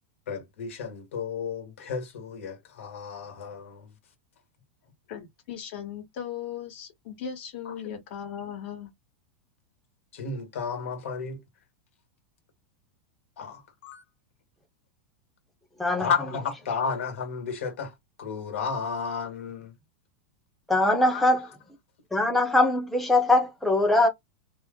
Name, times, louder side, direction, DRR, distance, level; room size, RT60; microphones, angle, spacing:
voice 1, 0.3-3.9 7.6-7.9 10.1-11.4 13.4-14.0 16.0-19.8 21.0-21.4, left 5 dB, 75° left, 1.4 m, -33 dB
voice 2, 5.1-8.9, left 8 dB, 60° left, 1.3 m, -37 dB
voice 3, 20.7-21.5 22.1-24.1, left 2 dB, ahead, 0.7 m, -22 dB
3.0 x 2.0 x 3.6 m
supercardioid pair, 145°, 7 cm